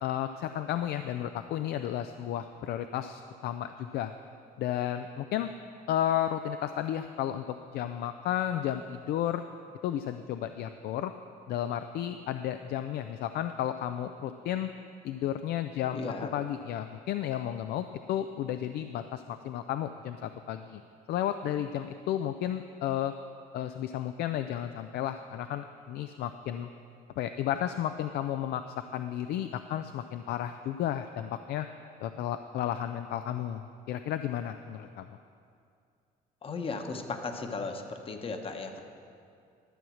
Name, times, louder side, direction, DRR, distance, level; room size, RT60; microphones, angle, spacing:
voice 1, 0.0-4.1 4.6-5.5 5.9-9.4 9.8-11.1 11.5-14.7 15.0-16.0 16.3-20.8 21.1-23.1 23.5-26.7 27.2-31.7 32.0-35.1, left 11 dB, 70° left, 9 dB, 0.4 m, -33 dB
voice 2, 15.9-16.3 36.4-38.8, left 4 dB, 35° left, 5 dB, 1.0 m, -36 dB
12.5 x 7.2 x 6.3 m, 2.4 s
cardioid pair, 110°, 17 cm